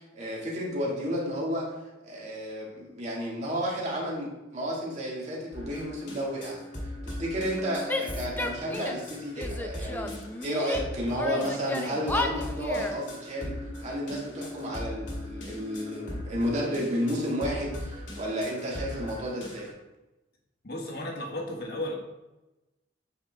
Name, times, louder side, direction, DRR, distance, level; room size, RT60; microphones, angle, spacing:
voice 1, 0.1-1.7 2.0-6.6 7.0-13.5 13.8-19.7, equal, 40° right, -4 dB, 2.0 m, -32 dB
sound 1, 5.5-19.7, left 1 dB, 85° left, 2.2 m, -39 dB
Female speech woman speaking / Yell, 7.9-9.1 9.4-10.8 11.2-13.0, left 2 dB, 10° left, 0.4 m, -33 dB
voice 2, 20.6-22.0, left 1 dB, 55° left, 1 dB, 1.3 m, -34 dB
8.5 x 4.7 x 3.5 m, 1.0 s
head